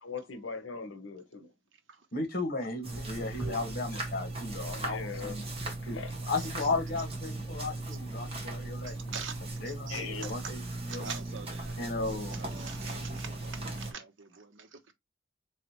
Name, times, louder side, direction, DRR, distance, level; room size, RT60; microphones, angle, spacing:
voice 1, 0.0-1.5 3.6-3.7 4.7-5.4 5.8-6.2 9.9-10.3, left 5 dB, 75° left, 0.8 m, -40 dB
voice 2, 2.1-5.4 5.9-6.0 6.3-9.1 9.6-11.0 11.8-12.4, left 3 dB, 50° left, 1.5 m, -35 dB
sound 1, 2.8-13.9, right 2 dB, 30° right, 1.2 m, -38 dB
voice 3, 3.1-3.6 6.4-6.8 7.9-8.0 8.8-9.4 9.6-10.5 10.9-14.9, right 6 dB, 70° right, 0.9 m, -44 dB
4.1 x 3.3 x 3.0 m
head